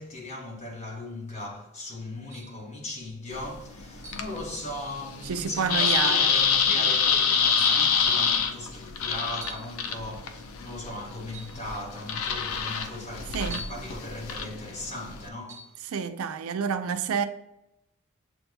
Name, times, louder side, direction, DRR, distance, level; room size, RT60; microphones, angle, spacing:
voice 1, 0.0-15.7, left 2 dB, 35° left, 0.9 m, -38 dB
sound 1, 2.3-2.6 4.0-4.4 5.1-5.2 5.8-6.2 7.6-7.9 9.3-9.7 11.3-11.6 13.5-13.9 15.5-15.7, right 3 dB, 15° right, 0.8 m, -40 dB
sound 2, 3.3-15.3, left 6 dB, 70° left, 0.5 m, -27 dB
voice 2, 5.2-6.3 6.7-6.9 13.3-13.6 15.8-17.3, right 6 dB, 75° right, 0.4 m, -29 dB
7.8 x 2.7 x 2.3 m
head